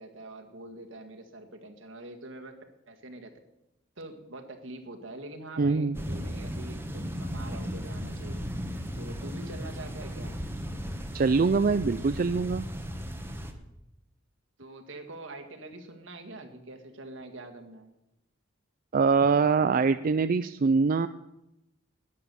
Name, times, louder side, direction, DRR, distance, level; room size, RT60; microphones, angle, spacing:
voice 1, 0.0-2.5 2.9-3.3 4.0-8.7 8.9-10.4 14.6-17.9, right 2 dB, 75° right, 5 dB, 1.9 m, -44 dB
voice 2, 5.6-6.0 11.1-12.6 18.9-21.1, right 4 dB, 45° right, 12 dB, 0.4 m, -23 dB
sound 1, 5.9-13.5, equal, 10° right, 1.1 m, -36 dB
13.0 x 9.7 x 7.0 m, 0.89 s
head